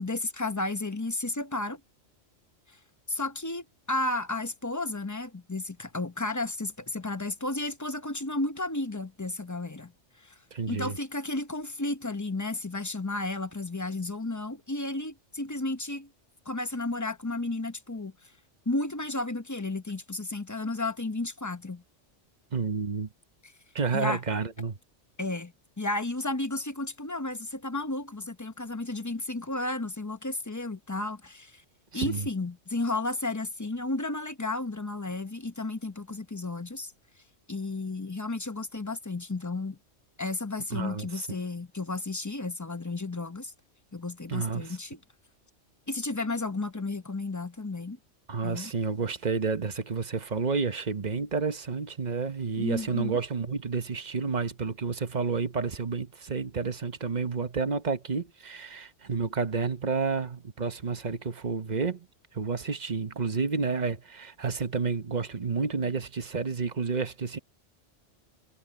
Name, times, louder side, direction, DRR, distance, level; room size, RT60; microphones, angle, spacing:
voice 1, 0.0-1.8 3.1-9.9 10.2-10.4 10.7-16.1 16.5-18.1 18.7-21.8 23.9-24.2 25.2-31.6 31.9-36.9 37.5-39.8 40.2-43.5 43.9-45.0 45.9-48.0 48.4-48.7 52.6-53.2, left 2 dB, 15° left, 0.7 m, -33 dB
voice 2, 10.5-11.0 22.5-23.1 23.7-24.8 31.9-32.3 40.7-41.3 44.3-44.8 48.3-62.1 62.3-67.4, right 5 dB, 40° right, 1.1 m, -30 dB
omnidirectional pair, 1.3 m